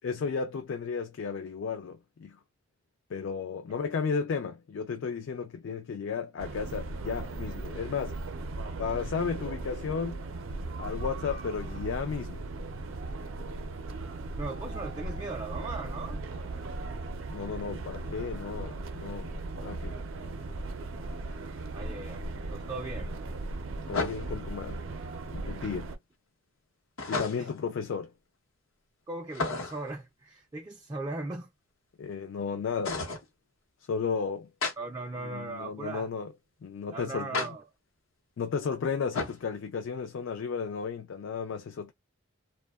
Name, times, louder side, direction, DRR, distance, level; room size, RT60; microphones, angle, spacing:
voice 1, 0.0-2.4 3.1-8.2 8.8-10.2 10.8-12.4 17.3-19.3 19.6-20.0 23.9-24.8 25.3-25.9 27.1-28.1 32.0-33.0 33.9-34.5 35.3-36.3 36.6-37.5 38.4-41.9, left 5 dB, 70° left, 0.3 m, -34 dB
sound 1, 6.4-26.0, right 2 dB, 75° right, 0.5 m, -37 dB
voice 2, 14.4-16.2 21.7-22.2 22.5-23.1 27.4-27.5 29.1-31.5 34.8-36.1 36.9-37.6, right 3 dB, 20° right, 0.3 m, -38 dB
sound 2, 21.3-21.4 23.9-24.5 27.0-27.6 29.3-29.9 32.8-33.3 34.6-34.8 37.3-37.5 39.1-39.4, left 3 dB, 85° left, 0.8 m, -32 dB
2.7 x 2.1 x 2.2 m
head